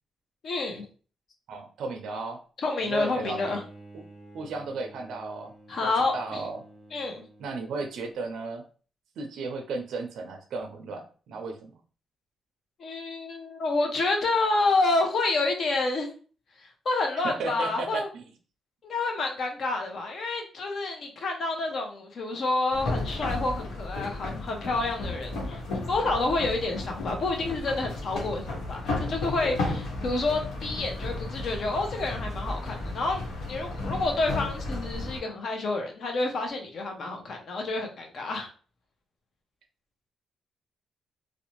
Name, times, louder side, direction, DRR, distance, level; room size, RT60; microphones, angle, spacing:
voice 1, 0.4-0.9 2.6-3.6 5.7-6.4 6.9-7.2 12.8-16.1 16.8-18.1 18.8-38.5, left 3 dB, 50° left, 3 dB, 0.6 m, -29 dB
voice 2, 1.5-2.4 2.8-3.6 4.3-5.5 5.8-6.6 7.4-8.6 9.2-11.7 17.2-18.3, right 3 dB, 75° right, 5 dB, 0.4 m, -34 dB
Bowed string instrument, 2.8-8.0, right 2 dB, 10° left, 0.9 m, -50 dB
sound 1, 22.7-35.2, left 2 dB, 90° left, 1.0 m, -34 dB
2.6 x 2.1 x 2.9 m, 0.40 s
cardioid pair, 130°, 0 cm